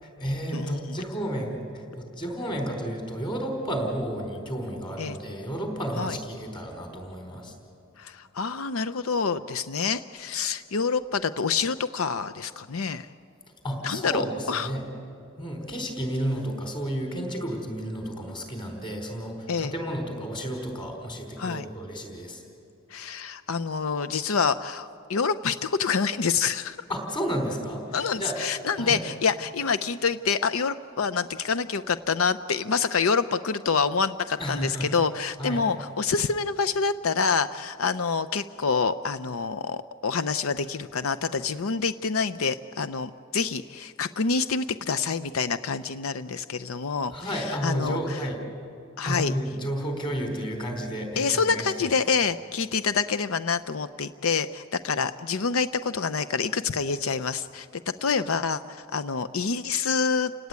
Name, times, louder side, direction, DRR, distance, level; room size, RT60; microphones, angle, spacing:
voice 1, 0.0-7.5 13.6-14.8 15.4-22.4 26.9-28.4 28.8-29.0 34.4-34.9 35.4-35.6 47.1-48.4 49.0-51.9, equal, 25° left, 3 dB, 4.5 m, -32 dB
voice 2, 0.5-1.0 5.0-5.2 6.0-6.2 8.0-13.1 13.8-14.7 19.5-19.7 21.4-21.7 22.9-26.8 27.9-48.3 49.0-49.3 51.2-60.3, left 5 dB, 80° left, 12 dB, 0.6 m, -27 dB
30.0 x 18.0 x 9.5 m, 2.6 s
head